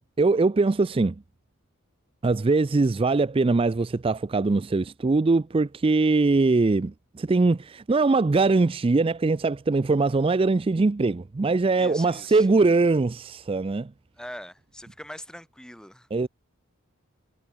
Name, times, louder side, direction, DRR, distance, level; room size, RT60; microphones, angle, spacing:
voice 1, 0.2-1.2 2.2-13.9 16.1-16.3, right 3 dB, 25° right, 0.4 m, -22 dB
voice 2, 11.7-12.5 14.2-16.1, left 1 dB, 5° left, 7.6 m, -42 dB
head